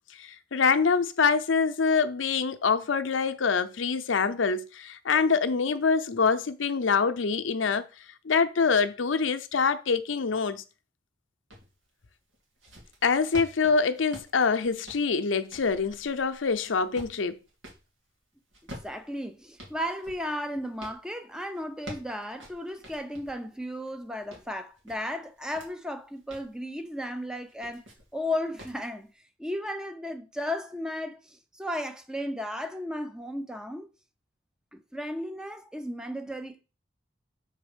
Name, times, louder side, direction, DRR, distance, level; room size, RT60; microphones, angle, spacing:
voice 1, 0.2-7.9 8.2-10.6 13.0-17.4, left 5 dB, 85° left, 0.6 m, -25 dB
sound 1, 11.5-11.7 12.3-17.9 18.5-21.0 21.5-23.4 23.9-25.7 26.1-26.5 27.4-28.1 28.6-28.8, equal, 85° right, 2.5 m, -47 dB
voice 2, 18.8-27.8 28.1-29.1 29.4-33.9 34.7-36.6, left 1 dB, 5° right, 0.7 m, -34 dB
6.2 x 4.0 x 5.0 m
head